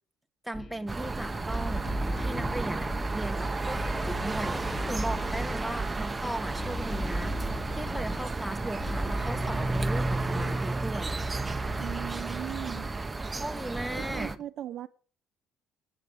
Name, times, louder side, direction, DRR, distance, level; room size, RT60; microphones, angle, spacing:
voice 1, 0.4-11.2 13.4-14.4, right 1 dB, ahead, 1.3 m, -37 dB
sound 1, 0.5-10.6, equal, 20° left, 3.9 m, -37 dB
sound 2, 0.9-14.4, right 3 dB, 15° right, 0.9 m, -32 dB
voice 2, 11.8-12.9 13.9-14.9, right 11 dB, 60° right, 0.7 m, -38 dB
10.5 x 8.9 x 6.0 m
cardioid pair, 115°, 0 cm